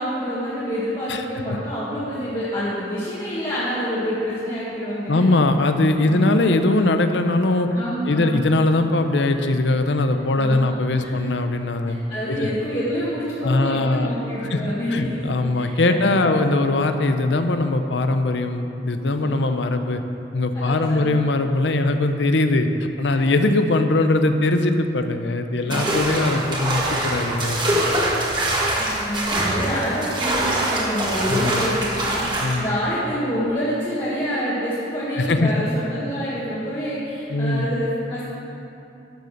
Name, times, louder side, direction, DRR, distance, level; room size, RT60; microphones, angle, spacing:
voice 1, 0.0-5.3 6.0-6.2 7.7-8.5 10.3-10.7 10.9-11.2 12.1-16.4 19.1-19.3 20.5-21.1 23.1-23.3 25.6-25.9 28.8-38.2, equal, 30° left, -11 dB, 1.8 m, -27 dB
voice 2, 5.1-7.7 8.1-12.0 12.3-12.5 13.4-14.1 14.5-14.6 14.9-20.0 20.3-28.1 31.3-31.8 32.4-32.8 35.2-35.5 37.3-37.7, left 2 dB, 80° left, 7 dB, 0.7 m, -21 dB
sound 1, 25.7-32.6, right 1 dB, 25° right, 1.7 m, -23 dB
11.5 x 6.8 x 6.6 m, 2.8 s
head